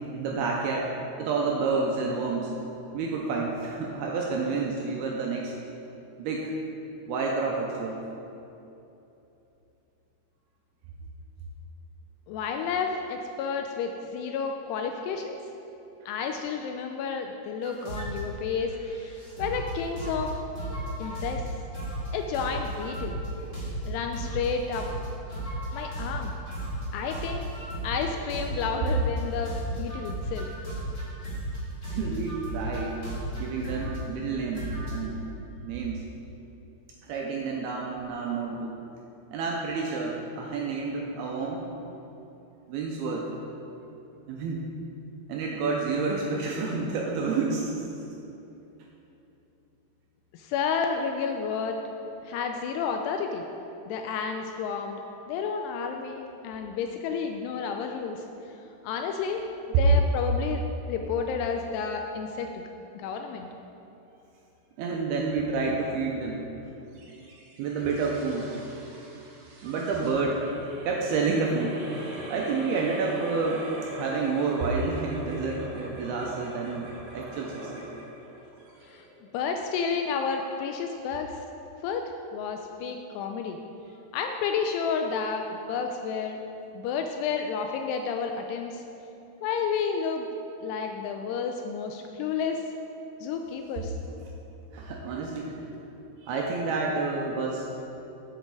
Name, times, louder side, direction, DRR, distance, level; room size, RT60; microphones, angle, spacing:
voice 1, 0.1-0.9 1.2-2.5 2.9-5.5 6.2-6.5 7.1-8.0 31.9-33.0 33.4-35.2 35.6-36.1 37.0-38.7 39.3-41.6 42.7-43.3 44.3-44.7 45.3-47.8 64.8-66.4 67.6-68.5 69.6-70.4 70.8-71.8 72.3-77.9 94.7-95.6 96.2-97.9, right 4 dB, 85° right, -1 dB, 2.3 m, -29 dB
voice 2, 12.3-15.4 16.1-20.3 21.0-21.4 22.1-23.2 23.8-24.9 25.7-26.3 26.9-27.5 27.8-30.5 50.3-51.8 52.2-53.5 53.9-55.0 55.3-58.2 58.8-59.4 59.8-62.7 63.0-63.5 78.9-79.0 79.3-81.4 81.8-82.0 82.3-83.6 84.1-85.4 85.7-86.4 86.7-88.8 89.4-90.3 90.6-92.6 93.2-94.0, left 6 dB, 85° left, 4 dB, 2.4 m, -31 dB
sound 1, 17.6-18.2 18.7-19.7 20.0-20.3 20.5-21.5 21.7-22.1 22.3-24.5 24.7-29.2 29.4-31.6 31.8-34.0 34.5-35.1, right 1 dB, 40° left, 0.7 m, -35 dB
sound 2, 66.9-79.6, right 1 dB, 65° right, 2.8 m, -43 dB
8.0 x 7.5 x 4.7 m, 2.9 s
omnidirectional pair, 5.1 m